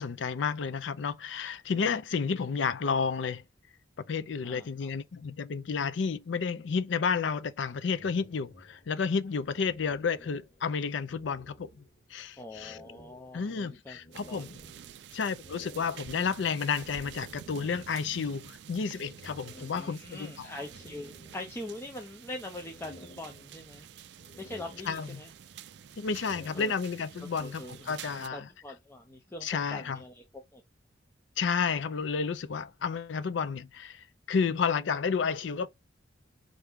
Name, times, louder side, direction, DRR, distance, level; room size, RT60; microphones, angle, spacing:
voice 1, 0.0-3.4 4.1-11.8 12.1-12.8 13.3-14.6 15.1-20.5 24.9-25.2 26.0-28.5 29.4-30.0 31.4-35.7, left 5 dB, 75° left, 0.4 m, -31 dB
voice 2, 4.4-4.9 12.4-14.0 14.3-14.5 19.4-23.9 24.4-25.3 26.5-26.7 27.2-30.2 30.5-30.6, left 1 dB, 15° left, 0.4 m, -43 dB
sound 1, 7.9-10.7 11.0-12.1 12.5-17.9 18.9-20.2 20.6-21.9 22.3-23.8 24.2-25.5 25.9-27.2, left 1 dB, 50° left, 1.2 m, -54 dB
sound 2, 14.1-28.3, right 9 dB, 60° right, 0.3 m, -49 dB
4.5 x 2.6 x 3.5 m
head